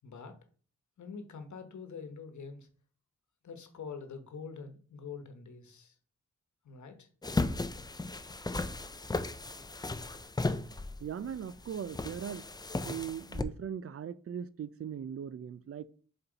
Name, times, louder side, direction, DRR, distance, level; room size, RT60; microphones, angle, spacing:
voice 1, 0.0-0.4 1.0-2.7 3.4-5.9 6.6-7.1, left 5 dB, 70° left, 1.2 m, -45 dB
sound 1, 7.2-13.4, left 2 dB, 15° left, 0.4 m, -35 dB
voice 2, 11.0-12.4 12.8-15.8, right 8 dB, 50° right, 0.5 m, -39 dB
6.9 x 4.3 x 4.0 m
cardioid pair, 80°, 30 cm